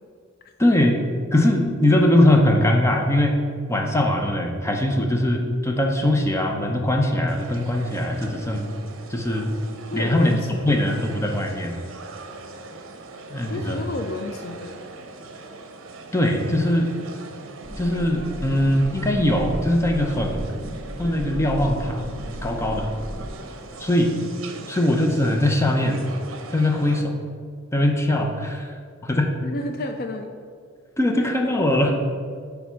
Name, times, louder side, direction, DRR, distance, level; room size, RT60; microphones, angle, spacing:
voice 1, 0.6-1.0 1.3-3.4 3.7-8.7 9.1-9.5 9.9-10.4 10.6-11.8 13.3-13.8 16.1-16.9 17.8-20.5 21.0-22.1 22.4-22.9 23.8-24.1 24.7-26.0 26.5-27.2 27.7-28.8 29.0-29.3 31.0-31.9, left 1 dB, 15° left, 3 dB, 0.7 m, -21 dB
sound 1, 7.3-27.0, right 3 dB, 65° right, 0.8 m, -41 dB
voice 2, 9.9-11.1 13.4-14.9 29.4-30.4, left 2 dB, 45° left, 6 dB, 0.4 m, -32 dB
sound 2, 17.6-23.3, equal, 40° right, 2.0 m, -34 dB
9.4 x 3.5 x 5.7 m, 2.1 s
head